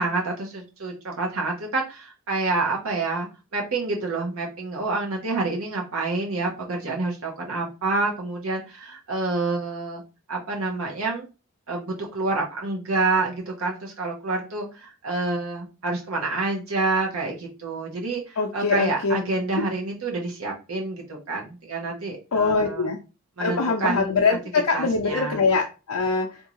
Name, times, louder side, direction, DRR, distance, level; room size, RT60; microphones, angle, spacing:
voice 1, 0.0-10.0 10.3-11.3 11.7-22.9 23.4-24.1 24.7-25.4, right 3 dB, 75° right, 0.8 m, -28 dB
voice 2, 18.4-19.2 19.6-19.7 22.3-23.0 23.4-26.4, left 4 dB, 80° left, 0.5 m, -23 dB
3.5 x 2.7 x 2.9 m
head